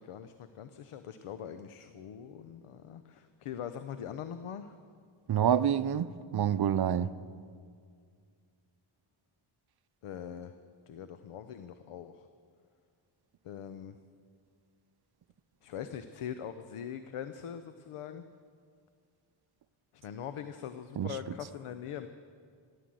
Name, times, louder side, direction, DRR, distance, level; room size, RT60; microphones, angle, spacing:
voice 1, 0.0-4.7 10.0-10.5 10.9-12.3 13.4-14.0 15.6-18.2 19.9-22.1, left 9 dB, 90° left, 10 dB, 0.7 m, -42 dB
voice 2, 5.3-7.1 21.0-21.2, right 9 dB, 50° right, 15 dB, 0.6 m, -27 dB
15.0 x 11.0 x 7.6 m, 2.1 s
cardioid pair, 80°, 50 cm